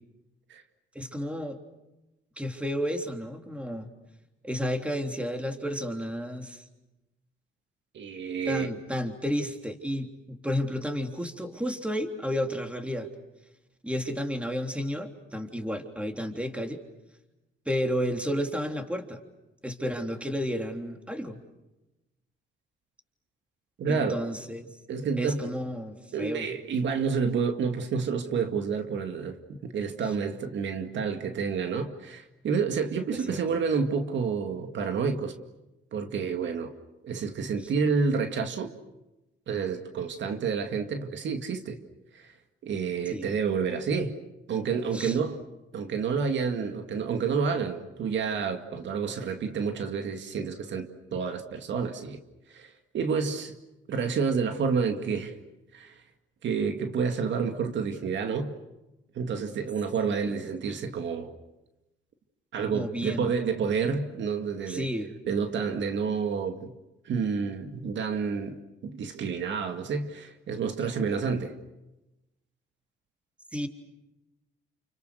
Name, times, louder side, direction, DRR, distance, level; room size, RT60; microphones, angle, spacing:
voice 1, 0.9-1.6 2.4-3.9 4.4-6.6 8.4-13.1 13.8-16.8 17.6-19.2 19.6-21.4 23.9-24.8 25.2-26.5 33.1-33.4 43.1-43.4 44.9-45.2 60.1-60.4 62.7-63.3 64.7-65.2 73.5-73.7, equal, 5° right, 4 dB, 3.4 m, -32 dB
voice 2, 7.9-8.7 23.8-24.2 24.9-25.5 26.1-35.4 35.9-36.7 37.0-38.7 39.5-41.8 42.1-42.3 42.6-44.2 44.5-45.4 45.7-52.2 52.5-53.5 53.9-55.3 55.7-55.9 56.4-58.5 59.1-61.3 62.5-64.9 65.3-66.7 67.0-71.6, right 5 dB, 65° right, 6 dB, 2.2 m, -29 dB
30.0 x 29.0 x 6.5 m, 0.99 s
cardioid pair, 90°, 20 cm